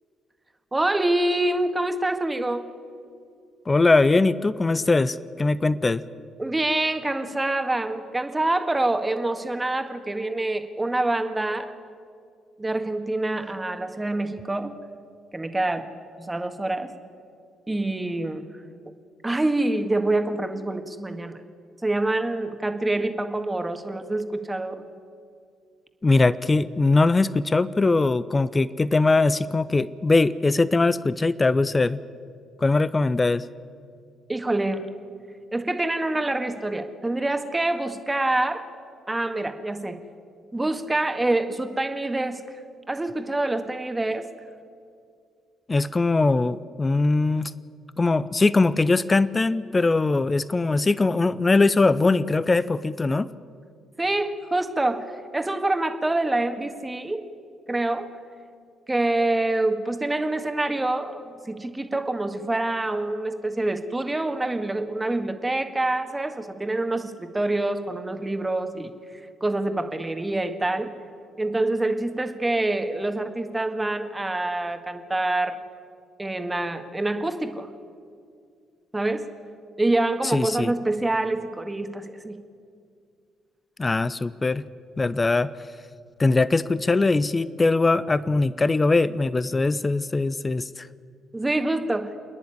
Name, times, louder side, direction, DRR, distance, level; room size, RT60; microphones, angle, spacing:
voice 1, 0.7-2.7 6.4-11.7 12.6-14.8 15.3-15.9 16.3-16.9 17.7-18.5 19.2-21.4 21.8-24.8 34.3-34.9 35.5-38.6 39.1-40.0 40.5-42.4 42.9-44.3 54.0-57.2 57.7-58.1 58.9-68.9 69.4-70.9 71.4-75.6 76.2-77.7 78.9-79.3 79.8-82.4 91.3-92.1, right 2 dB, 15° right, 7 dB, 1.8 m, -26 dB
voice 2, 3.7-6.0 26.0-32.0 32.6-33.4 45.7-47.5 48.0-53.3 80.2-80.7 83.8-84.6 85.0-85.5 86.2-90.9, left 3 dB, 25° left, 17 dB, 0.6 m, -21 dB
27.5 x 10.5 x 9.9 m, 2.3 s
figure-of-eight pair, 45°, 0 cm